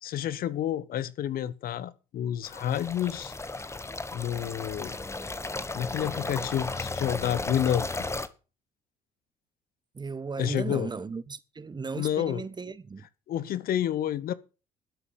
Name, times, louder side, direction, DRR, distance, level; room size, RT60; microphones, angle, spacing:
voice 1, 0.0-3.3 4.1-5.0 5.7-8.0 10.4-10.9 12.0-12.4 13.3-14.3, left 10 dB, 50° left, 1.0 m, -29 dB
sound 1, 2.4-8.3, left 3 dB, 15° left, 1.3 m, -35 dB
voice 2, 9.9-13.1, right 4 dB, 25° right, 1.0 m, -36 dB
13.0 x 8.2 x 6.8 m
figure-of-eight pair, 55°, 19 cm